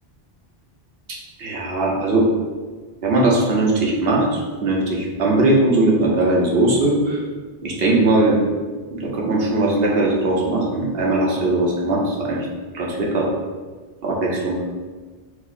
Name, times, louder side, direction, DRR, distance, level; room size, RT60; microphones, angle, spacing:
voice 1, 1.1-2.3 3.0-7.2 7.6-8.4 8.9-12.5 12.7-13.3 14.0-14.6, right 2 dB, 70° right, -2 dB, 1.1 m, -19 dB
4.7 x 2.0 x 4.2 m, 1.4 s
omnidirectional pair, 1.0 m